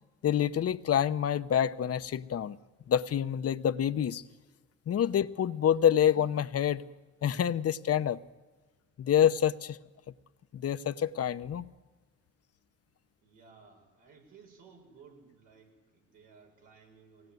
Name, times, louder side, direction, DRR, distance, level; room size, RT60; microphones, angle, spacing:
voice 1, 0.2-2.6 2.9-4.2 4.9-6.8 7.2-8.2 9.0-9.8 10.5-11.7, left 9 dB, 50° left, 0.9 m, -27 dB
voice 2, 13.2-17.3, right 5 dB, 85° right, 7.2 m, -57 dB
23.5 x 19.0 x 9.3 m
cardioid pair, 90°, 30 cm